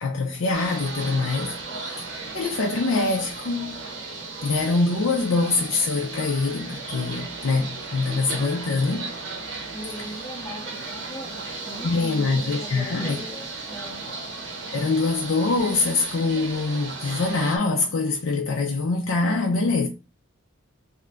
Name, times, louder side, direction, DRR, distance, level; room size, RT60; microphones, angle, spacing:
voice 1, 0.0-2.1 2.3-3.8 4.4-9.1 11.8-13.2 14.7-19.9, left 3 dB, 75° left, 0.5 m, -24 dB
sound 1, 0.5-17.6, right 3 dB, 60° right, 0.8 m, -35 dB
voice 2, 9.7-11.4 11.7-14.1, equal, 20° left, 0.6 m, -39 dB
2.7 x 2.5 x 3.3 m
head